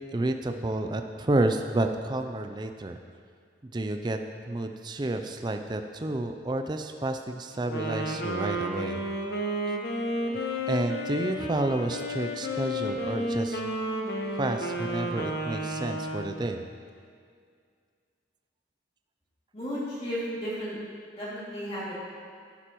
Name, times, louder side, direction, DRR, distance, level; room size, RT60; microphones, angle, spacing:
voice 1, 0.1-3.0 3.6-4.2 4.5-9.1 10.3-13.7 14.3-16.7, right 2 dB, 25° right, 6 dB, 0.4 m, -30 dB
Wind instrument woodwind instrument, 7.6-16.5, equal, 60° left, 1.0 m, -32 dB
voice 2, 19.5-20.8 21.2-21.9, equal, 30° left, -9 dB, 2.6 m, -33 dB
11.5 x 11.0 x 3.0 m, 2.1 s
head